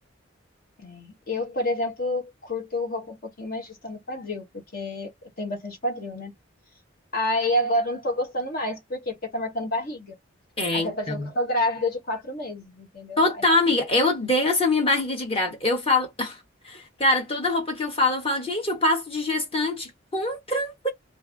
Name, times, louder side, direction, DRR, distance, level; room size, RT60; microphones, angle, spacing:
voice 1, 0.8-5.1 5.4-6.3 7.1-10.1 10.7-13.4, left 1 dB, 50° left, 1.3 m, -29 dB
voice 2, 10.6-11.3 13.2-16.4 16.6-20.9, left 2 dB, 30° left, 1.4 m, -24 dB
3.4 x 2.7 x 3.4 m
head